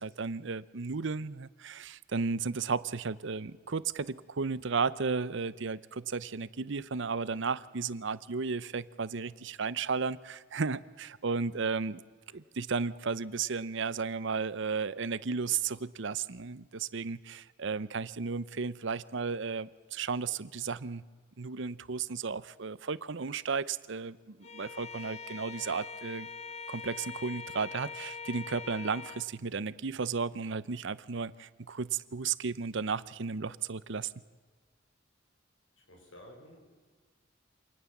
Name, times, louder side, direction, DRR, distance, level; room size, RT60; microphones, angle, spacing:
voice 1, 0.0-12.0 12.3-21.0 21.4-26.3 26.7-34.1, right 5 dB, 65° right, 18 dB, 0.7 m, -34 dB
Bowed string instrument, 24.4-29.3, left 5 dB, 35° left, 0.8 m, -43 dB
voice 2, 35.9-36.9, equal, 75° left, 2 dB, 6.6 m, -53 dB
27.0 x 19.0 x 7.3 m, 1.5 s
head